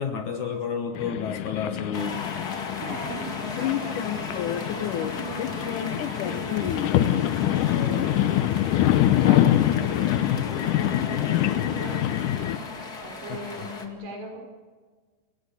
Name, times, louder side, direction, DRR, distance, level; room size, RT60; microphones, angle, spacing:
voice 1, 0.0-2.2 13.3-13.7, left 6 dB, 65° left, 6 dB, 2.0 m, -31 dB
sound 1, 0.9-12.6, left 12 dB, 80° left, 1.8 m, -25 dB
sound 2, 1.9-13.9, left 3 dB, 35° left, 1.7 m, -36 dB
voice 2, 2.8-6.7 7.6-8.6 9.2-14.4, right 2 dB, 80° right, 2 dB, 7.2 m, -40 dB
29.5 x 17.0 x 8.4 m, 1.5 s
omnidirectional pair, 4.7 m